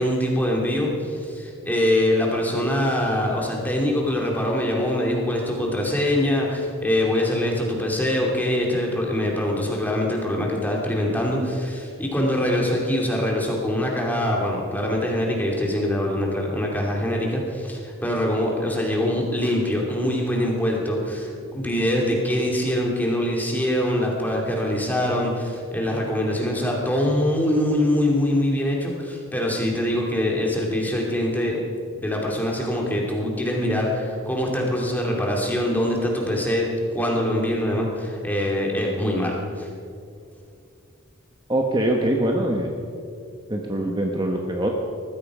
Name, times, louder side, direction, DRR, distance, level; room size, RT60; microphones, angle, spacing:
voice 1, 0.0-31.6 32.0-39.7, left 1 dB, 10° left, -1 dB, 2.7 m, -23 dB
voice 2, 41.5-42.7 43.5-44.7, right 1 dB, 20° right, 1 dB, 1.2 m, -23 dB
20.0 x 14.5 x 5.0 m, 2.4 s
head